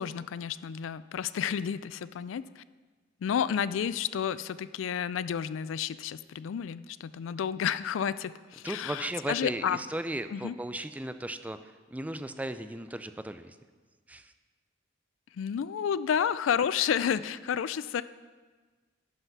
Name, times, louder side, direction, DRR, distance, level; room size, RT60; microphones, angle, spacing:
voice 1, 0.0-2.6 3.2-9.8 10.3-10.6 15.3-18.0, left 8 dB, 90° left, 16 dB, 0.3 m, -31 dB
voice 2, 8.6-13.6 14.1-14.3, right 1 dB, 10° right, 10 dB, 0.3 m, -36 dB
11.0 x 5.7 x 5.9 m, 1.4 s
head